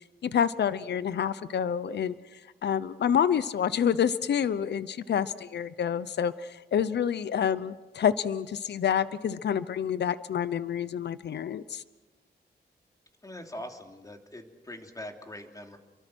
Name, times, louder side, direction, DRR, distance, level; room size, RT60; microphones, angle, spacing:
voice 1, 0.2-11.8, left 8 dB, 85° left, 15 dB, 0.8 m, -28 dB
voice 2, 13.2-15.8, left 1 dB, 20° left, 4 dB, 3.0 m, -42 dB
29.0 x 23.5 x 6.2 m, 1.1 s
wide cardioid pair, 110°, 17 cm